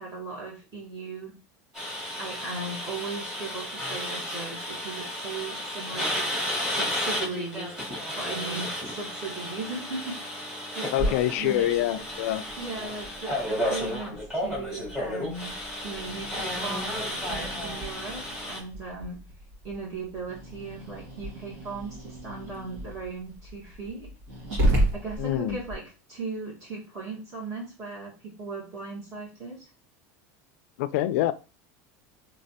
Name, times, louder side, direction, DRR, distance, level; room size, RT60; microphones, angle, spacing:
voice 1, 0.0-1.3 2.2-6.3 6.6-7.7 8.1-10.5 10.7-11.6 12.6-15.6 15.8-18.2 18.5-19.2 19.6-24.1 24.9-25.8 26.1-28.1 28.4-29.6, right 3 dB, 40° right, -5 dB, 1.5 m, -37 dB
sound 1, 1.7-18.6, left 1 dB, 5° right, 1.6 m, -33 dB
voice 2, 10.9-12.4 25.2-25.6 30.8-31.3, left 13 dB, 75° left, 14 dB, 0.3 m, -25 dB
Growling, 11.0-25.8, right 1 dB, 60° right, 1.9 m, -34 dB
3.2 x 3.2 x 2.8 m, 0.32 s
supercardioid pair, 150°, 8 cm